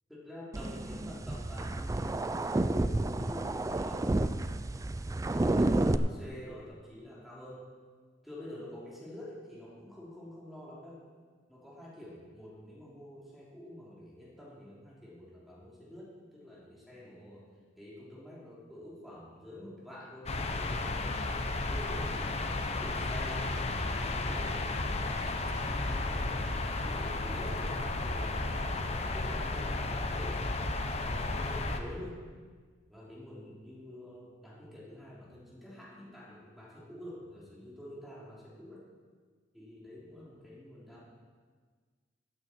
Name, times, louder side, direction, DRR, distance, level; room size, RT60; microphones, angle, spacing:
voice 1, 0.1-4.1 5.0-7.6 8.2-11.0 11.5-17.5 17.8-21.2 21.5-25.2 25.6-30.4 31.1-32.2 32.9-38.8 39.5-41.0, left 1 dB, ahead, -7 dB, 3.2 m, -47 dB
sound 1, 0.5-6.0, right 2 dB, 20° right, 0.4 m, -30 dB
sound 2, 20.3-31.8, left 2 dB, 35° left, 0.8 m, -33 dB
15.0 x 8.8 x 4.5 m, 1.5 s
head